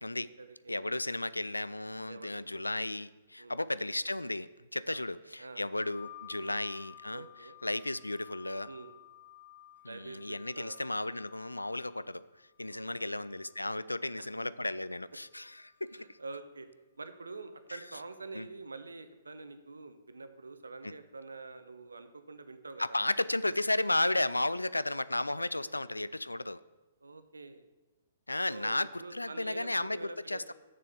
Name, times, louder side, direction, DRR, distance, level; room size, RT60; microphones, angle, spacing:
voice 1, 0.2-0.8 2.1-2.9 3.4-3.6 4.9-5.7 6.3-6.6 7.1-7.6 8.7-8.9 9.9-10.8 12.7-13.1 14.0-14.3 15.9-16.7 17.0-23.0 25.6-25.9 27.0-27.7 28.5-30.5, right 3 dB, 75° right, 10 dB, 0.7 m, -47 dB
voice 2, 0.7-7.3 7.6-8.7 9.8-12.3 12.6-16.2 18.3-18.5 20.8-20.9 22.8-26.6 28.3-30.5, left 2 dB, 85° left, 17 dB, 0.3 m, -34 dB
sound 1, 5.8-14.2 15.2-16.0, left 12 dB, 55° left, 2.3 m, -55 dB
7.0 x 6.7 x 6.8 m, 1.2 s
figure-of-eight pair, 120°, 0 cm